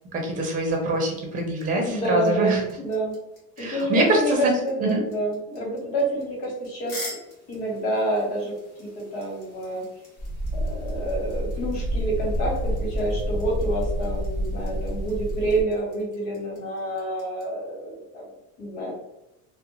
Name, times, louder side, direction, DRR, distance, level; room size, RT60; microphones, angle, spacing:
voice 1, 0.1-2.6 3.6-4.5 4.8-5.0, right 2 dB, 25° right, 1 dB, 0.7 m, -24 dB
sound 1, 0.6-17.4, left 1 dB, 45° left, 1.2 m, -43 dB
voice 2, 1.8-3.1 3.6-7.0 7.5-9.9 10.5-18.2 18.6-19.0, right 1 dB, 70° left, -2 dB, 1.4 m, -28 dB
sound 2, 10.2-15.6, equal, 25° left, 1.0 m, -28 dB
2.5 x 2.1 x 2.9 m, 0.91 s
cardioid pair, 125°, 34 cm